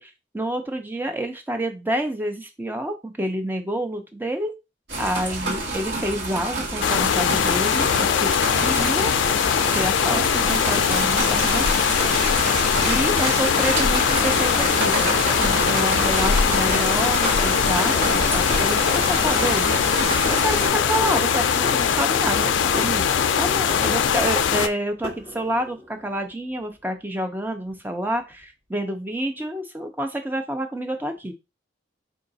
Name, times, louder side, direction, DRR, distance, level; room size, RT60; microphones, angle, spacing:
voice 1, 0.0-4.5 5.0-9.4 9.7-11.7 12.8-15.1 15.4-19.7 20.3-22.5 22.7-23.1 23.4-31.3, right 1 dB, 10° right, 6 dB, 0.6 m, -28 dB
sound 1, 4.9-20.7, right 2 dB, 60° right, 1.5 m, -29 dB
sound 2, 6.8-24.7, left 7 dB, 70° left, 0.4 m, -21 dB
sound 3, 10.5-24.6 25.0-26.1 28.3-28.4, right 1 dB, 35° right, 1.3 m, -32 dB
4.8 x 2.5 x 3.9 m, 0.25 s
head